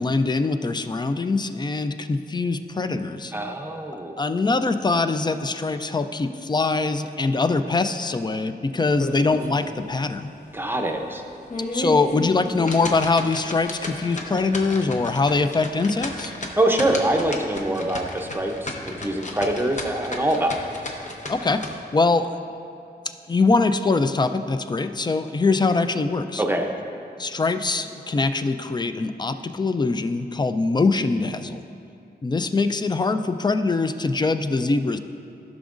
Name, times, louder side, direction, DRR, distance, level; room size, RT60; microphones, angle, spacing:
voice 1, 0.0-3.3 4.2-10.3 11.7-16.3 21.3-22.3 23.1-26.4 27.2-31.6 32.2-35.0, left 3 dB, 25° left, 9 dB, 0.4 m, -23 dB
voice 2, 3.3-4.2 10.5-11.2 16.6-20.7 26.4-26.7, right 1 dB, 10° right, 3 dB, 0.7 m, -24 dB
sound 1, 8.9-9.6 10.0-10.1 10.6-10.7 11.3-21.7, left 2 dB, 45° left, 0.8 m, -33 dB
14.0 x 6.1 x 2.5 m, 2.5 s
wide cardioid pair, 95°, 17 cm